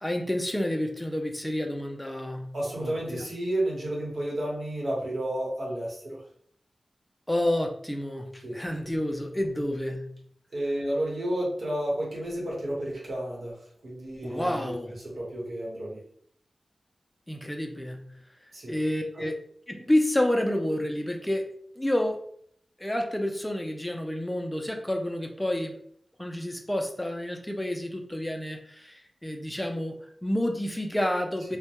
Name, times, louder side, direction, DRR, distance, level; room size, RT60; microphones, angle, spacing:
voice 1, 0.0-3.3 7.3-10.2 14.2-14.9 17.3-18.2 18.7-19.3 19.7-22.2 22.8-25.8 26.2-31.6, left 1 dB, 10° left, 3 dB, 0.3 m, -29 dB
voice 2, 2.5-6.2 8.4-8.6 10.5-16.0 18.5-18.8 19.1-19.3, right 1 dB, 75° right, -4 dB, 1.0 m, -31 dB
2.1 x 2.1 x 2.8 m, 0.63 s
wide cardioid pair, 75°, 0 cm